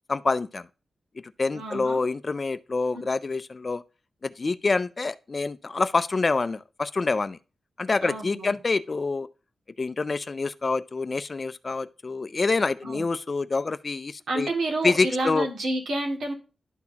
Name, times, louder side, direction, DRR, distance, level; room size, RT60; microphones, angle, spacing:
voice 1, 0.1-0.7 1.4-3.8 4.2-7.4 7.8-9.3 9.8-14.5 14.8-15.5, left 3 dB, 35° left, 0.4 m, -26 dB
voice 2, 1.5-2.0 2.9-3.0 8.0-8.5 12.8-13.0 14.3-16.3, right 2 dB, 85° right, 2.2 m, -29 dB
11.5 x 4.2 x 2.8 m
wide cardioid pair, 145°, 0 cm